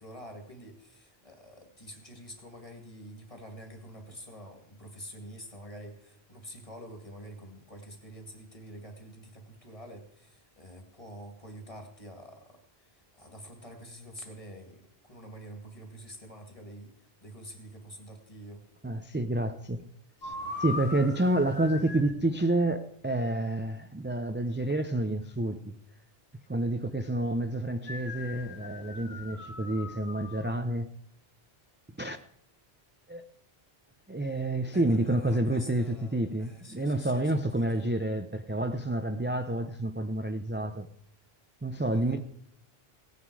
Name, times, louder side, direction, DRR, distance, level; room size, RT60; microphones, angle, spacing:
voice 1, 0.0-18.7 34.2-37.8 41.9-42.2, equal, 35° left, 2.3 m, -47 dB
voice 2, 18.8-19.8 20.2-20.3 20.6-25.8 26.5-30.9 32.0-32.2 33.1-33.2 34.1-40.9 41.6-42.2, right 1 dB, 15° right, 0.4 m, -29 dB
sound 1, 20.2-22.2 27.8-30.6, left 3 dB, 80° left, 1.8 m, -40 dB
17.0 x 9.3 x 4.8 m
omnidirectional pair, 1.0 m